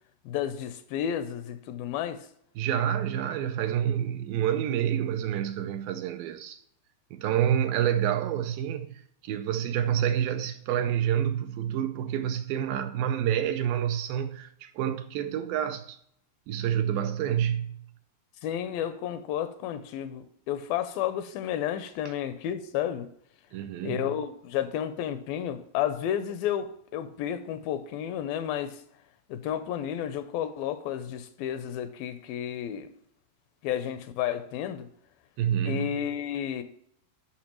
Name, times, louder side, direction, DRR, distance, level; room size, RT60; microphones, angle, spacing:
voice 1, 0.3-2.3 18.4-23.1 23.8-28.8 29.3-32.9 33.6-34.9 35.7-36.6, left 10 dB, 80° left, 2.2 m, -32 dB
voice 2, 2.6-6.6 7.1-16.0 16.5-17.7 23.5-24.0 35.4-35.9, right 10 dB, 80° right, 2.2 m, -28 dB
11.5 x 5.6 x 2.9 m
omnidirectional pair, 4.4 m